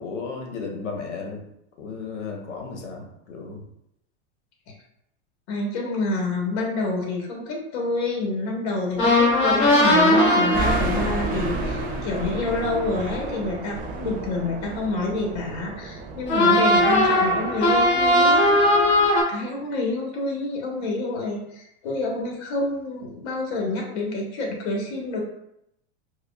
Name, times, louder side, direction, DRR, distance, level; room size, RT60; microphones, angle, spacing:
voice 1, 0.0-1.4 1.8-3.6 16.8-17.1, left 4 dB, 90° left, 1 dB, 1.1 m, -34 dB
voice 2, 5.5-18.5 19.3-25.2, left 2 dB, 65° left, -1 dB, 1.4 m, -28 dB
sound 1, 9.0-13.7 16.3-19.2, left 1 dB, 35° left, 1.4 m, -20 dB
sound 2, 10.5-19.1, right 3 dB, 25° right, 0.4 m, -33 dB
4.8 x 2.4 x 2.3 m, 0.79 s
supercardioid pair, 120°, 35 cm